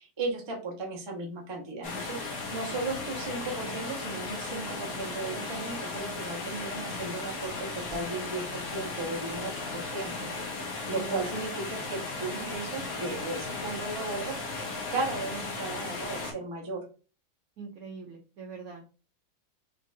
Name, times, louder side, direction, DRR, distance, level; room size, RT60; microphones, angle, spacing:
voice 1, 0.0-16.9, right 3 dB, 30° right, 0 dB, 0.5 m, -36 dB
sound 1, 1.8-16.3, left 3 dB, 55° left, 1.3 m, -36 dB
voice 2, 10.9-11.3 17.6-18.8, right 4 dB, 75° right, 2 dB, 0.8 m, -42 dB
4.5 x 3.6 x 2.5 m, 0.35 s
omnidirectional pair, 2.2 m